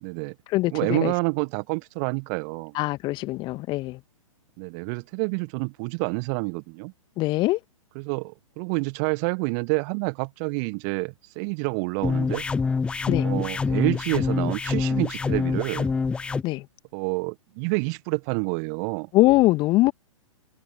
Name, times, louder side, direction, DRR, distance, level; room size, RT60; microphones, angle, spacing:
voice 1, 0.0-0.3 0.7-2.8 4.6-6.9 7.9-12.4 13.2-15.9 16.9-19.1, right 37 dB, 30° right, 1.3 m, -28 dB
voice 2, 0.5-1.1 2.8-4.0 7.2-7.6 13.1-13.3 16.4-16.7 19.1-19.9, left 19 dB, 25° left, 1.9 m, -22 dB
sound 1, 12.0-16.4, left 4 dB, 5° left, 0.4 m, -25 dB
figure-of-eight pair, 115°, 18 cm